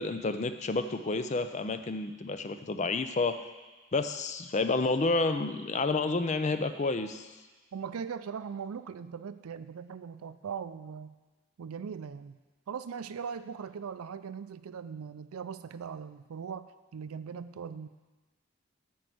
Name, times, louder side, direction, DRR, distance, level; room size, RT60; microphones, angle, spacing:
voice 1, 0.0-3.4 3.9-7.3, left 3 dB, 30° left, 9 dB, 0.4 m, -30 dB
voice 2, 7.7-11.1 11.6-12.4 12.7-17.9, right 6 dB, 85° right, 13 dB, 0.4 m, -40 dB
9.2 x 4.7 x 7.7 m, 1.3 s
head